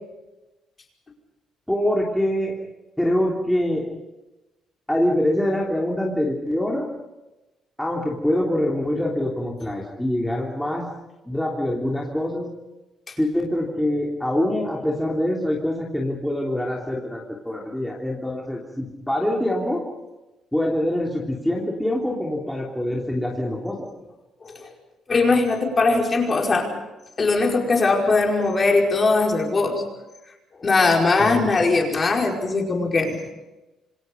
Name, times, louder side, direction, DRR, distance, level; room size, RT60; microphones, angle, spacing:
voice 1, 1.7-2.6 3.0-3.9 4.9-6.9 7.8-10.9 11.2-12.5 13.2-19.8 20.5-23.9 31.2-31.5, left 1 dB, 5° left, -3 dB, 3.3 m, -24 dB
voice 2, 25.1-26.8 27.2-29.8 30.6-33.2, left 3 dB, 25° left, 1 dB, 5.1 m, -20 dB
27.5 x 26.5 x 5.4 m, 1.0 s
cardioid pair, 155°, 0 cm